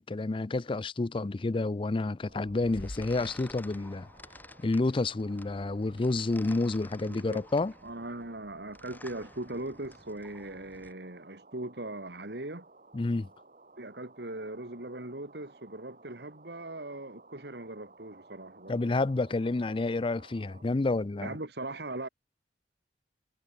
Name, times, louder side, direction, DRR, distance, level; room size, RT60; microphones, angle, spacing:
voice 1, 0.0-4.1 4.6-7.7 12.9-13.3 18.7-21.4, left 2 dB, 30° left, 0.5 m, -29 dB
sound 1, 2.2-20.6, right 3 dB, 50° right, 5.4 m, -57 dB
sound 2, 2.3-10.9, left 1 dB, 10° left, 2.1 m, -50 dB
voice 2, 7.0-7.4 7.8-12.7 13.8-18.8 21.2-22.1, right 2 dB, 65° right, 2.8 m, -40 dB
head